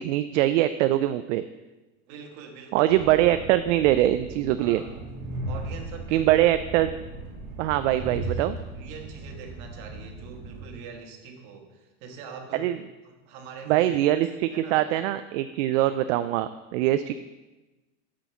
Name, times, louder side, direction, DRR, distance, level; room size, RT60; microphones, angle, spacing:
voice 1, 0.0-1.4 2.7-4.8 6.1-6.9 7.6-8.6 12.5-12.8 13.7-17.2, right 13 dB, 70° right, 11 dB, 0.5 m, -23 dB
voice 2, 2.1-3.4 4.6-5.0 5.4-6.4 7.8-12.7 13.0-14.0 14.4-14.9 15.7-15.9, right 5 dB, 50° right, 3 dB, 1.7 m, -43 dB
Train, 2.9-10.7, right 2 dB, 30° right, 1.9 m, -37 dB
6.4 x 6.1 x 6.9 m, 1.1 s
supercardioid pair, 135°, 39 cm